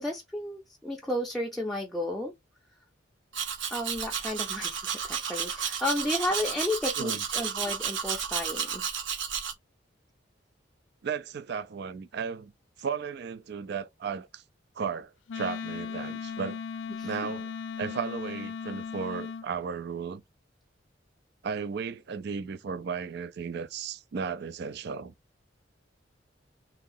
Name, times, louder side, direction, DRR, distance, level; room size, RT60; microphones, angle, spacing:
voice 1, 0.0-2.3 3.7-8.9 17.0-17.1, left 1 dB, ahead, 0.5 m, -32 dB
Domestic sounds home sounds, 3.3-9.5, right 7 dB, 80° right, 0.9 m, -32 dB
voice 2, 11.0-12.5 12.8-14.4 14.8-16.6 17.0-17.5 17.8-20.2 21.4-25.1, right 6 dB, 60° right, 0.4 m, -35 dB
Wind instrument woodwind instrument, 15.3-19.5, left 6 dB, 85° left, 0.4 m, -37 dB
2.8 x 2.8 x 3.8 m
head